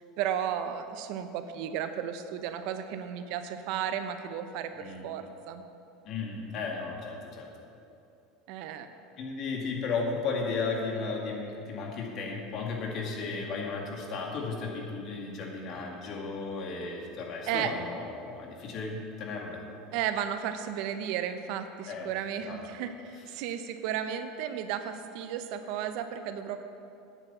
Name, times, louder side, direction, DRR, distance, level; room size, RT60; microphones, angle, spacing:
voice 1, 0.2-5.6 8.5-8.9 17.5-17.7 19.9-26.6, right 9 dB, 65° right, 9 dB, 0.8 m, -34 dB
voice 2, 6.1-7.5 9.2-19.6 21.9-22.1 22.5-22.6, left 4 dB, 50° left, 0 dB, 2.2 m, -34 dB
9.1 x 8.0 x 7.3 m, 2.7 s
supercardioid pair, 110°, 0 cm